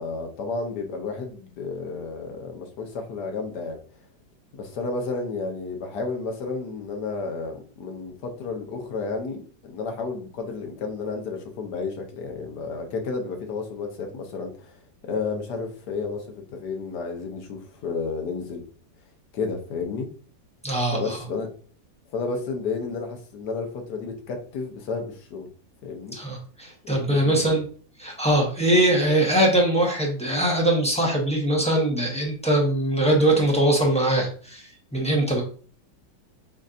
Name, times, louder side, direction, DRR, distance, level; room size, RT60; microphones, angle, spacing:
voice 1, 0.0-3.8 4.5-14.7 15.0-18.6 19.3-20.1 20.9-21.5 22.1-25.5 25.8-26.2 27.0-27.6, left 4 dB, 65° left, 3 dB, 1.4 m, -32 dB
voice 2, 20.6-21.2 26.1-27.6 28.0-35.4, right 1 dB, 5° left, -2 dB, 0.6 m, -22 dB
7.6 x 2.7 x 2.5 m, 0.43 s
omnidirectional pair, 2.0 m